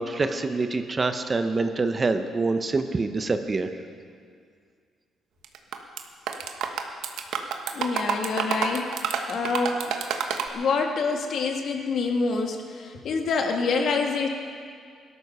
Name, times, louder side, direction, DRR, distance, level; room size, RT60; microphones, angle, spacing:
voice 1, 0.0-3.7, right 3 dB, 25° right, 8 dB, 0.8 m, -26 dB
sound 1, 5.4-6.0 6.3-10.5, right 7 dB, 85° right, 1.2 m, -28 dB
voice 2, 7.7-9.9 10.5-14.3, left 4 dB, 60° left, 3 dB, 1.9 m, -26 dB
18.0 x 13.0 x 5.6 m, 2.2 s
cardioid pair, 125°, 0 cm